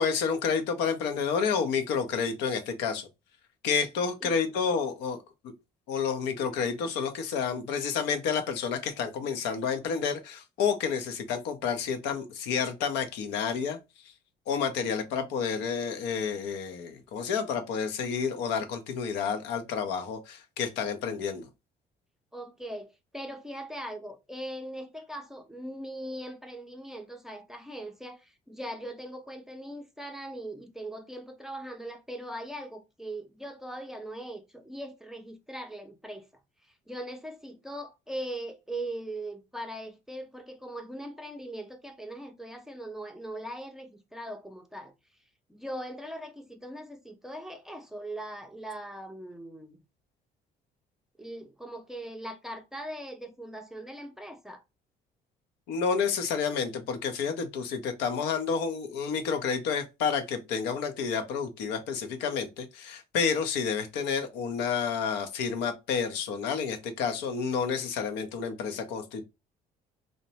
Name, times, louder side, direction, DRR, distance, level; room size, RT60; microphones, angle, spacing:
voice 1, 0.0-3.1 3.6-5.2 5.9-13.8 14.5-21.5 55.7-69.2, left 6 dB, 90° left, 0.6 m, -30 dB
voice 2, 22.3-36.3 36.9-44.9 45.5-49.8 51.2-54.6, right 1 dB, ahead, 0.5 m, -40 dB
2.9 x 2.1 x 2.7 m
cardioid pair, 110°, 17 cm